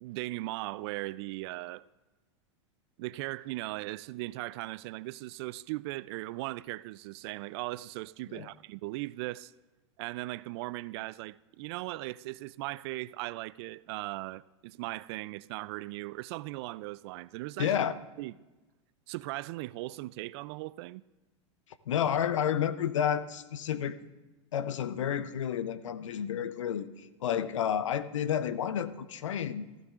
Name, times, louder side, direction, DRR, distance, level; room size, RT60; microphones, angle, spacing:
voice 1, 0.0-1.8 3.0-9.5 10.0-17.7 18.2-18.3 19.1-21.0, right 19 dB, 60° right, 0.4 m, -38 dB
voice 2, 17.6-17.9 21.9-24.0 24.5-29.7, left 9 dB, 85° left, 0.7 m, -30 dB
16.0 x 15.0 x 2.5 m
hypercardioid pair, 105°, 16 cm